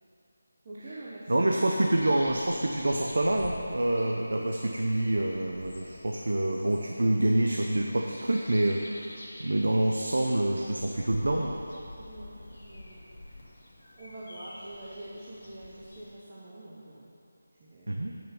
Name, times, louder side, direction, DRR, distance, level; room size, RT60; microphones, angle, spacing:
voice 1, 0.6-2.2 12.0-13.1 13.9-17.1 17.5-18.1, right 1 dB, 20° right, -8 dB, 0.7 m, -45 dB
voice 2, 1.3-11.6 17.9-18.1, right 1 dB, 90° right, 1 dB, 0.7 m, -27 dB
sound 1, 1.9-16.1, left 1 dB, 50° left, 1.8 m, -48 dB
8.9 x 6.1 x 5.6 m, 2.8 s
figure-of-eight pair, 175°, 0 cm